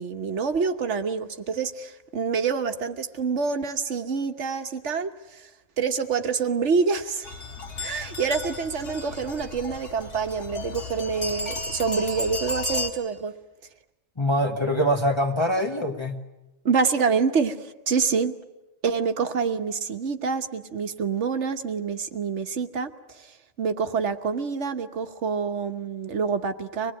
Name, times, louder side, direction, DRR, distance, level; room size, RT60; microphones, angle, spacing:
voice 1, 0.0-5.5 5.8-7.3 7.8-13.3 16.6-18.3 18.8-26.9, right 5 dB, 85° right, 8 dB, 1.5 m, -27 dB
sound 1, 7.2-12.9, left 2 dB, 85° left, 2.8 m, -34 dB
voice 2, 14.2-16.2, equal, 25° left, 0 dB, 1.4 m, -24 dB
25.5 x 19.5 x 9.1 m, 1.0 s
omnidirectional pair, 1.2 m